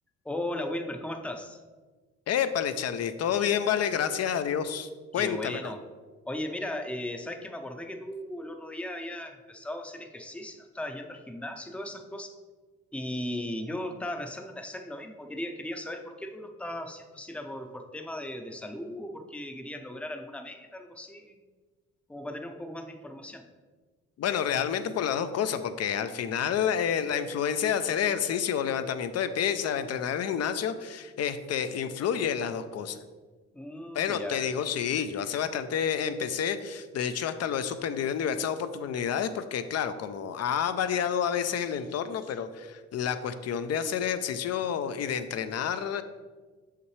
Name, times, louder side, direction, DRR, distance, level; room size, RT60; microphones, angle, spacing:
voice 1, 0.2-1.6 5.1-5.8 6.2-12.4 12.9-21.4 22.1-23.5 33.5-34.4, left 1 dB, 5° left, 5 dB, 0.6 m, -37 dB
voice 2, 2.3-5.7 24.2-33.0 34.0-46.0, left 8 dB, 55° left, 11 dB, 0.5 m, -29 dB
6.4 x 5.7 x 3.2 m, 1.4 s
cardioid pair, 90°, 30 cm